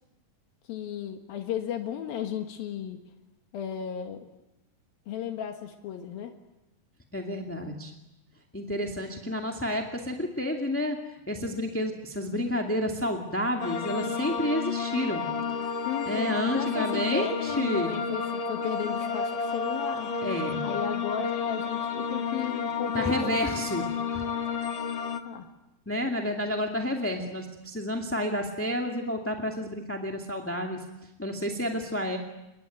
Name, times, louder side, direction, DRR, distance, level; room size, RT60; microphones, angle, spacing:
voice 1, 0.7-3.0 3.5-4.3 5.1-6.3 15.8-20.1 20.6-23.4 25.2-25.5, left 9 dB, 80° left, 5 dB, 3.4 m, -34 dB
voice 2, 7.1-7.9 8.5-11.0 11.3-15.3 16.1-17.9 20.2-20.6 22.9-23.8 24.1-24.3 25.8-30.8 31.2-32.2, left 1 dB, 5° left, 2 dB, 1.4 m, -30 dB
sound 1, 13.6-25.2, left 5 dB, 45° left, 1.7 m, -31 dB
28.0 x 23.0 x 9.3 m, 0.95 s
omnidirectional pair, 4.2 m